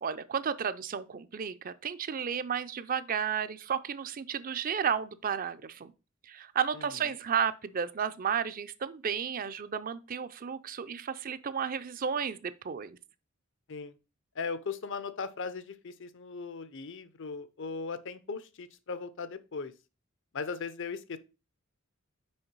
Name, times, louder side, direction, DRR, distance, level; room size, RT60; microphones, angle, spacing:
voice 1, 0.0-5.9 6.2-13.0, right 7 dB, 40° right, 0.5 m, -33 dB
voice 2, 6.7-7.0 13.7-14.0 14.4-19.7 20.3-21.2, left 5 dB, 60° left, 0.6 m, -38 dB
6.4 x 4.6 x 4.5 m
head